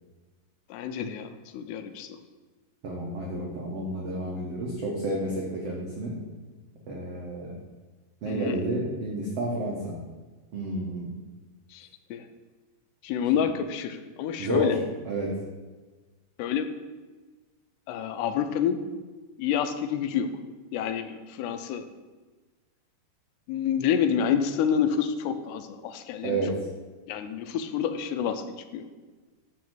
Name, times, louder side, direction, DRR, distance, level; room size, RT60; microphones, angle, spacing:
voice 1, 0.7-2.2 8.3-8.6 11.7-12.3 13.0-14.8 16.4-16.7 17.9-18.8 19.4-20.3 20.7-21.9 23.5-26.4 27.1-28.9, left 8 dB, 80° left, 9 dB, 2.7 m, -28 dB
voice 2, 2.8-6.2 6.9-7.5 8.2-10.0 10.5-11.1 14.4-14.7 15.0-15.3 26.2-26.6, right 1 dB, 85° right, -2 dB, 1.3 m, -30 dB
12.0 x 4.3 x 7.8 m, 1.3 s
omnidirectional pair, 4.9 m